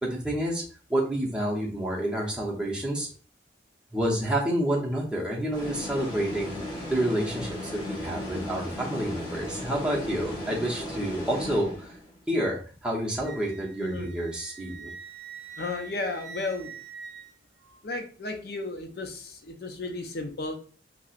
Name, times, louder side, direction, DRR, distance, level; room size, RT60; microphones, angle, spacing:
voice 1, 0.0-0.6 0.9-3.1 3.9-6.5 6.9-12.0 12.3-14.9, right 1 dB, 5° right, -4 dB, 0.6 m, -29 dB
sound 1, 5.5-12.1, left 1 dB, 25° left, 1.1 m, -36 dB
Wind instrument woodwind instrument, 13.2-17.8, right 6 dB, 55° right, 0.5 m, -44 dB
voice 2, 15.6-16.7 17.8-20.5, left 3 dB, 55° left, 5 dB, 0.5 m, -34 dB
4.1 x 2.0 x 2.4 m, 0.40 s
head